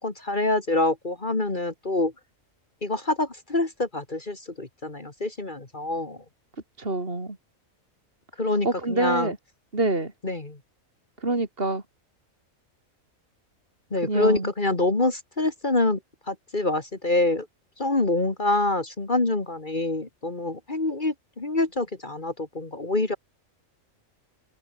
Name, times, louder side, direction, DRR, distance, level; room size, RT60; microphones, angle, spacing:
voice 1, 0.0-2.1 2.8-6.2 8.4-9.3 10.2-10.6 13.9-16.0 16.3-17.5 17.8-23.2, left 2 dB, 35° left, 2.4 m, -26 dB
voice 2, 6.8-7.4 8.6-9.4 9.7-10.1 11.2-11.8 14.0-14.5, right 2 dB, 45° right, 3.8 m, -26 dB
open air
omnidirectional pair, 1.4 m